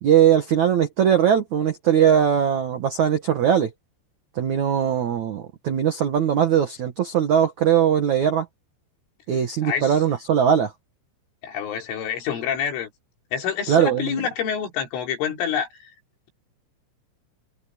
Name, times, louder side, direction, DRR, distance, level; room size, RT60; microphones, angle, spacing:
voice 1, 0.0-3.7 4.4-8.5 9.3-10.7 13.7-14.2, right 9 dB, 80° right, 1.7 m, -20 dB
voice 2, 9.6-10.0 11.4-12.9 13.3-15.7, left 8 dB, 75° left, 6.0 m, -27 dB
omnidirectional pair, 5.8 m